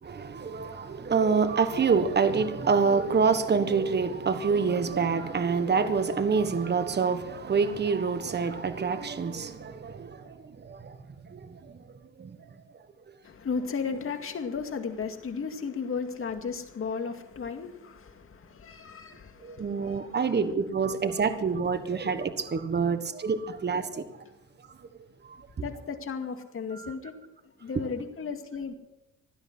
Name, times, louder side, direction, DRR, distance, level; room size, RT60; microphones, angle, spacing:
voice 1, 0.0-11.0 11.2-11.8 12.2-12.4 19.4-24.0 25.2-25.5 26.7-26.9, right 5 dB, 35° right, 1.4 m, -27 dB
voice 2, 13.2-20.3 22.7-22.9 25.6-27.1 27.6-28.7, left 5 dB, 45° left, 2.3 m, -35 dB
16.5 x 12.0 x 6.2 m
cardioid pair, 90°, 30 cm